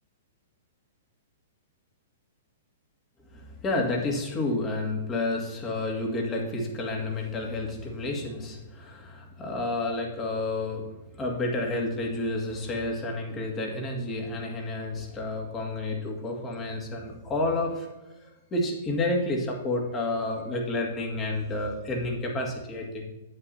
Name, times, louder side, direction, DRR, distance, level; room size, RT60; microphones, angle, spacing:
voice 1, 3.3-17.9 18.2-23.1, left 2 dB, 25° left, 0 dB, 2.1 m, -30 dB
9.5 x 8.1 x 2.8 m, 1.0 s
hypercardioid pair, 125°, 0 cm